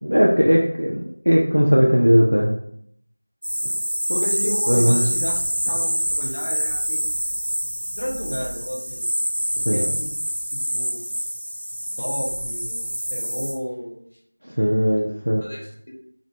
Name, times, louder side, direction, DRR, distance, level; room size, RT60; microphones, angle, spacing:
voice 1, 0.0-2.5 4.7-5.0 9.6-9.8 14.4-15.5, equal, 85° right, -3 dB, 0.4 m, -18 dB
sound 1, 3.4-13.5, equal, 30° right, 0.9 m, -26 dB
voice 2, 4.1-7.0 7.9-9.1 9.7-10.1 10.5-11.0 12.0-14.1 15.4-15.9, equal, 40° left, -1 dB, 0.5 m, -31 dB
2.5 x 2.1 x 2.6 m, 0.71 s
figure-of-eight pair, 175°, 0 cm